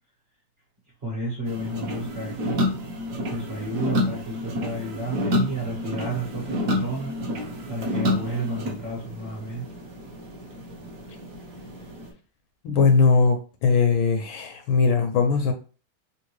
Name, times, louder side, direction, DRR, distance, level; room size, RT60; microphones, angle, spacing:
voice 1, 1.0-2.6 3.3-7.1 7.6-9.7, right 2 dB, 35° right, -4 dB, 1.0 m, -32 dB
sound 1, 1.5-12.1, left 1 dB, 60° right, 0.9 m, -29 dB
voice 2, 12.6-15.5, left 4 dB, 75° left, 6 dB, 1.3 m, -20 dB
3.7 x 2.6 x 3.0 m, 0.36 s
omnidirectional pair, 2.4 m